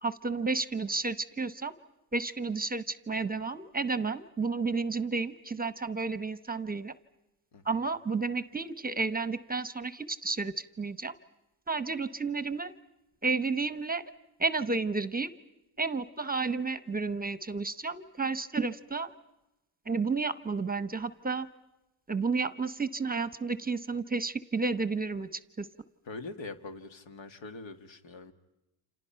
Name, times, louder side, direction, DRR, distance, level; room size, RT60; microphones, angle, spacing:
voice 1, 0.0-1.7 2.1-7.0 7.6-11.2 11.7-12.7 13.2-14.0 14.4-15.3 15.8-19.1 19.9-21.5 22.1-25.7, right 4 dB, 20° right, 14 dB, 0.9 m, -31 dB
voice 2, 26.1-28.3, left 3 dB, 70° left, 8 dB, 2.1 m, -43 dB
29.5 x 27.5 x 5.8 m, 0.95 s
cardioid pair, 100°, 48 cm